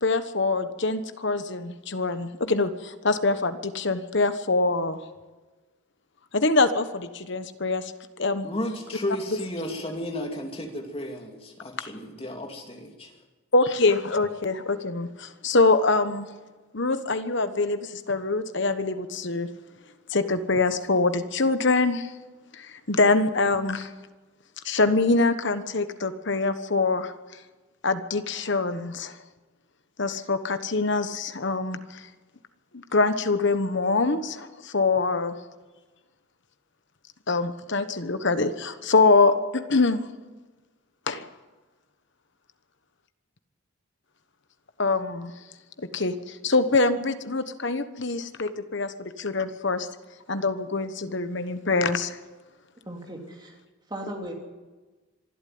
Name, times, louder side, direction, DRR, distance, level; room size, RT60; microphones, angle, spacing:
voice 1, 0.0-5.0 6.3-7.9 8.2-8.5 13.5-16.3 16.7-19.5 20.1-22.1 22.5-23.9 24.6-27.1 27.8-29.2 30.0-32.1 32.7-35.4 37.3-40.0 41.1-41.2 44.8-45.3 45.8-49.9 50.3-52.2, left 3 dB, 55° left, 11 dB, 1.2 m, -24 dB
voice 2, 8.4-13.1, left 1 dB, 25° left, 3 dB, 2.7 m, -33 dB
voice 3, 52.8-53.6 53.9-54.3, right 1 dB, 20° right, 1 dB, 3.1 m, -37 dB
25.0 x 12.0 x 9.5 m, 1.3 s
head